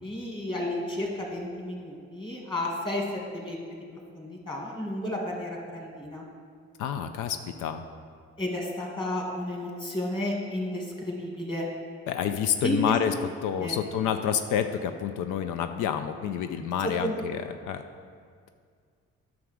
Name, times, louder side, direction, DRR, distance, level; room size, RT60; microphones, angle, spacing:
voice 1, 0.0-3.0 3.3-3.8 4.1-6.3 8.4-11.7 12.6-12.9 13.6-13.8 16.8-17.2, left 1 dB, 15° left, -1 dB, 1.9 m, -32 dB
voice 2, 6.8-7.8 12.1-13.1 13.4-17.8, left 8 dB, 90° left, 8 dB, 0.5 m, -28 dB
9.4 x 6.1 x 4.8 m, 2.1 s
cardioid pair, 90°, 30 cm